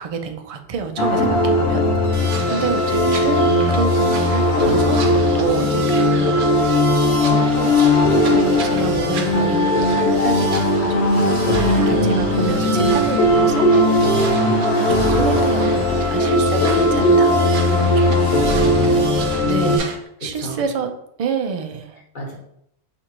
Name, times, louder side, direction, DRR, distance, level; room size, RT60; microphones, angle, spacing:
voice 1, 0.0-5.0 5.3-13.7 14.7-18.1 19.4-19.9 20.2-20.9 21.2-22.0, right 5 dB, 55° right, 6 dB, 0.4 m, -28 dB
sound 1, 1.0-19.8, left 1 dB, 80° left, 1.0 m, -18 dB
sound 2, 2.1-19.9, right 5 dB, 75° right, 0.9 m, -33 dB
voice 2, 2.4-2.7 14.0-14.6 17.7-18.6 20.2-20.6 22.1-22.3, equal, 50° left, -4 dB, 1.3 m, -34 dB
6.2 x 2.5 x 2.9 m, 0.75 s
omnidirectional pair, 1.1 m